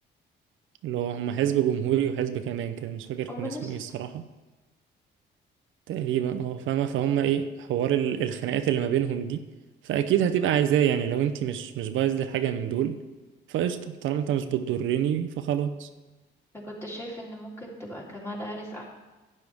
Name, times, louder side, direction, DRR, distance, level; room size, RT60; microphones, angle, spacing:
voice 1, 0.8-4.3 5.9-9.4 9.8-13.0 13.5-15.9, right 10 dB, 80° right, 9 dB, 0.6 m, -26 dB
voice 2, 3.3-3.7 16.6-18.8, equal, 10° left, -4 dB, 3.1 m, -37 dB
11.5 x 9.6 x 3.5 m, 1.2 s
cardioid pair, 90°, 20 cm